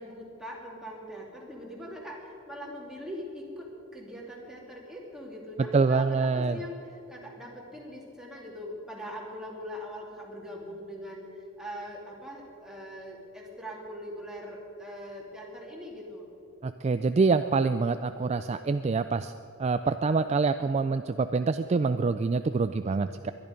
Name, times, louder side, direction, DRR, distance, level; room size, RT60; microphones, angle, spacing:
voice 1, 0.0-11.3 11.6-16.3, equal, ahead, -3 dB, 2.7 m, -41 dB
voice 2, 5.7-6.6 16.6-19.3 19.6-23.3, right 4 dB, 30° right, 10 dB, 0.3 m, -26 dB
21.5 x 11.0 x 5.2 m, 2.8 s
head